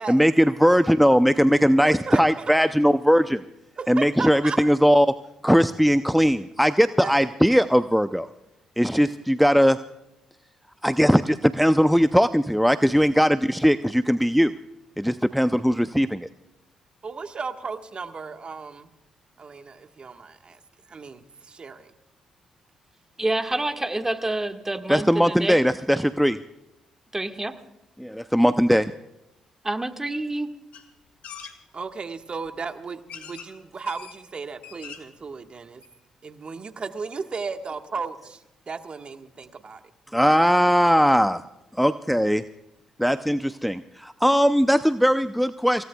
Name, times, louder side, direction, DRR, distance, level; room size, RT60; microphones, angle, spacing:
voice 1, 0.1-3.4 3.9-5.1 5.4-8.3 8.8-9.8 10.8-14.5 15.0-16.3 24.9-26.4 28.0-28.9 40.1-41.4 41.7-42.4 43.0-45.8, equal, ahead, 11 dB, 0.6 m, -19 dB
voice 2, 1.8-2.5 3.8-4.6 7.0-7.3 17.0-18.9 19.4-20.6 20.9-21.9 31.7-35.8 36.2-39.8, right 5 dB, 45° right, 7 dB, 1.5 m, -35 dB
voice 3, 23.2-25.6 27.1-27.5 29.6-30.5, right 2 dB, 15° right, 6 dB, 1.7 m, -27 dB
sound 1, 30.7-30.8 31.2-31.5 32.5-32.6 33.1-33.5 33.9-34.2 34.5-35.2 35.5-35.6 35.8-35.9, left 8 dB, 70° left, 2.1 m, -41 dB
27.0 x 17.5 x 2.3 m, 0.90 s
hypercardioid pair, 50°, 3 cm